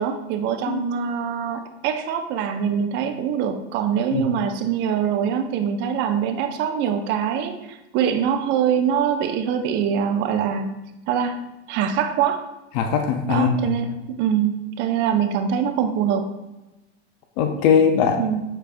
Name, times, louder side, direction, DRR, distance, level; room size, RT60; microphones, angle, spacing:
voice 1, 0.0-10.7 11.1-11.4 11.7-12.4 13.3-16.3 18.2-18.4, right 8 dB, 35° right, 7 dB, 0.4 m, -23 dB
voice 2, 12.8-13.8 17.4-18.2, left 6 dB, 40° left, 5 dB, 0.5 m, -20 dB
6.5 x 3.2 x 2.5 m, 0.99 s
hypercardioid pair, 115°, 34 cm